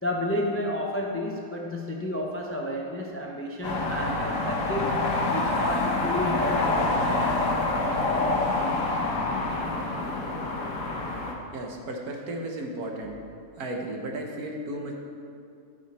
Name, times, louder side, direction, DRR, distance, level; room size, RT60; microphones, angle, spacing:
voice 1, 0.0-4.9 5.3-7.4, left 1 dB, 15° left, 0 dB, 0.4 m, -31 dB
sound 1, 3.6-11.3, left 2 dB, 60° left, 1.5 m, -26 dB
voice 2, 11.5-13.2 13.6-14.9, right 1 dB, 65° right, 1 dB, 1.6 m, -34 dB
13.5 x 6.5 x 4.3 m, 2.5 s
omnidirectional pair, 1.7 m